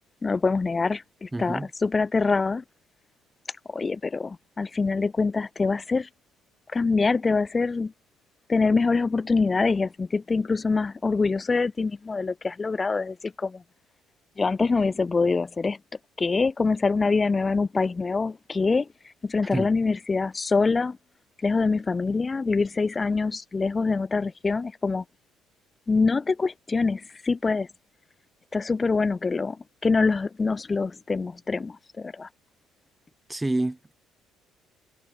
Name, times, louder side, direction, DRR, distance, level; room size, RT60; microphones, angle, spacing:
voice 1, 0.2-2.6 3.7-6.1 6.7-7.9 8.5-13.6 14.4-15.8 16.2-18.9 19.2-21.0 21.4-25.0 25.9-27.7 28.5-32.3, left 4 dB, 25° left, 1.2 m, -25 dB
voice 2, 1.3-1.7 19.4-19.7 33.3-33.9, right 2 dB, 10° right, 1.1 m, -28 dB
supercardioid pair, 90°, 0 cm